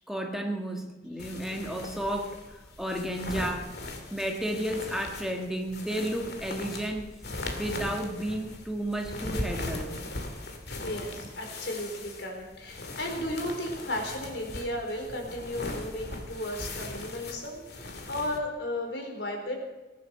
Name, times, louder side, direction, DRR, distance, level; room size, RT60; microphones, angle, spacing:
voice 1, 0.1-2.4 2.8-3.7 4.1-7.1 7.5-10.0, right 1 dB, ahead, 2 dB, 1.6 m, -32 dB
sound 1, 1.2-18.4, left 2 dB, 65° left, 2.3 m, -39 dB
voice 2, 10.8-19.6, left 1 dB, 80° left, 2 dB, 4.1 m, -34 dB
18.5 x 11.0 x 6.7 m, 1.2 s
head